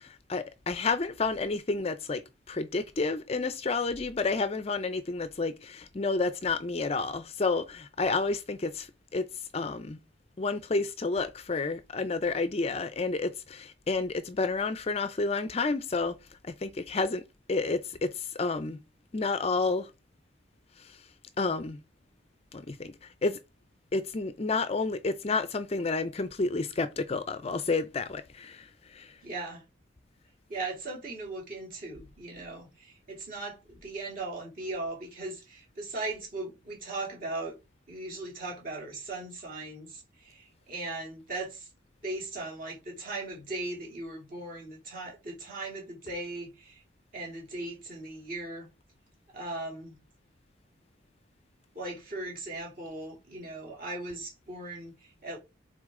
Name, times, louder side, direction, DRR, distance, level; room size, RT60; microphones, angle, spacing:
voice 1, 0.0-2.2 2.5-9.2 9.5-10.0 10.4-16.2 16.4-17.2 17.5-18.8 19.1-19.9 20.8-21.0 21.4-21.8 22.5-22.9 23.2-23.4 23.9-29.1, left 3 dB, 30° left, 0.4 m, -30 dB
voice 2, 29.2-29.6 30.5-37.5 37.9-41.7 42.0-46.8 47.1-48.7 49.3-50.0 51.7-55.4, right 2 dB, 45° right, 2.8 m, -38 dB
6.3 x 4.3 x 3.6 m
head